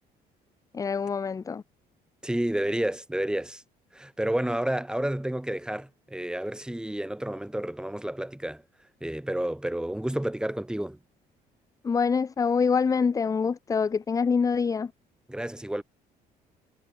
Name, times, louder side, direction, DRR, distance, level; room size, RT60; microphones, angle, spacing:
voice 1, 0.7-1.6 11.8-14.9, left 5 dB, 20° left, 0.4 m, -25 dB
voice 2, 2.2-3.6 3.9-8.6 9.0-11.0 15.3-15.8, right 1 dB, 5° right, 4.0 m, -30 dB
cardioid pair, 110°, 17 cm